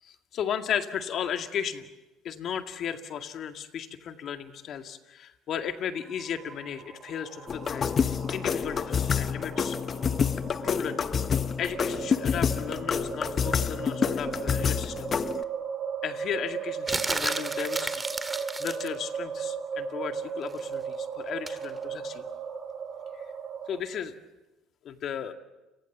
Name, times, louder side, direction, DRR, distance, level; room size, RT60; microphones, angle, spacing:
voice 1, 0.0-1.9 2.2-9.8 10.6-11.1 11.6-15.1 16.0-18.1 18.6-22.3 23.1-23.2 23.7-24.1 24.8-25.3, left 8 dB, 55° left, 7 dB, 2.1 m, -35 dB
sound 1, 6.0-23.8, right 6 dB, 45° right, 4.2 m, -37 dB
sound 2, 7.5-15.4, left 7 dB, 40° left, 0.9 m, -28 dB
sound 3, 16.9-18.9 21.5-21.6, right 2 dB, 15° right, 2.1 m, -32 dB
29.5 x 24.5 x 7.3 m, 1.1 s
supercardioid pair, 75°, 0 cm